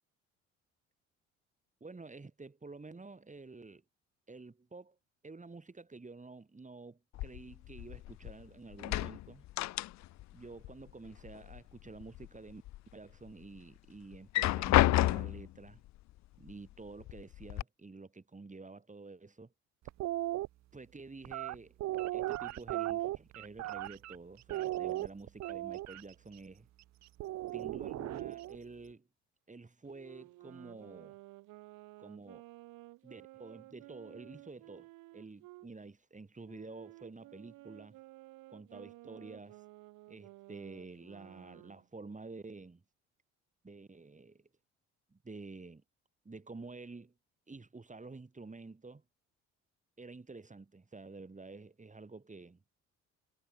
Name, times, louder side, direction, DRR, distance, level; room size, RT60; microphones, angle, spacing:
voice 1, 1.8-3.8 4.3-5.0 5.2-9.4 10.3-12.6 12.9-15.8 16.4-19.5 20.7-21.8 22.1-26.7 27.5-29.1 29.5-31.2 32.0-32.4 33.0-34.9 35.1-38.0 38.5-39.6 40.1-42.8 43.6-44.5 45.1-45.8 46.2-47.1 47.5-49.0 50.0-52.6, right 3 dB, 20° right, 7.9 m, -50 dB
sound 1, 7.2-8.4 8.7-10.3 10.6-11.6 12.0-12.8 13.3-13.4 14.1-15.5 16.5-16.6 17.0-17.6, left 16 dB, 55° left, 0.7 m, -30 dB
sound 2, 19.9-20.5 21.2-24.2 24.5-26.0 27.2-28.6, right 15 dB, 50° right, 0.8 m, -36 dB
Wind instrument woodwind instrument, 29.9-35.7 36.4-41.9, right 20 dB, 65° right, 2.2 m, -54 dB
hypercardioid pair, 60°, 34 cm